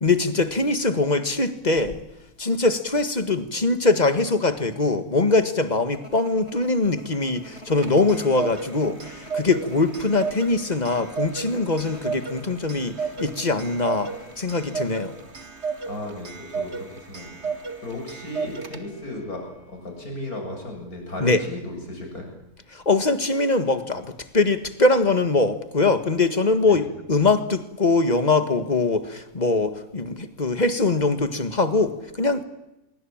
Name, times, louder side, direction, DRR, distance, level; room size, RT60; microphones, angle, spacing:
voice 1, 0.0-2.0 2.4-12.9 13.2-15.1 21.2-21.4 22.7-24.1 24.3-32.4, left 3 dB, 30° left, 10 dB, 1.8 m, -22 dB
sound 1, 5.9-14.4, equal, 45° left, 4.9 m, -46 dB
Clock, 7.5-19.1, right 5 dB, 50° right, 2.3 m, -34 dB
voice 2, 15.9-17.4 17.8-22.3 26.6-26.8, left 1 dB, 85° left, 2 dB, 8.0 m, -35 dB
24.5 x 23.5 x 8.8 m, 0.94 s
omnidirectional pair, 1.5 m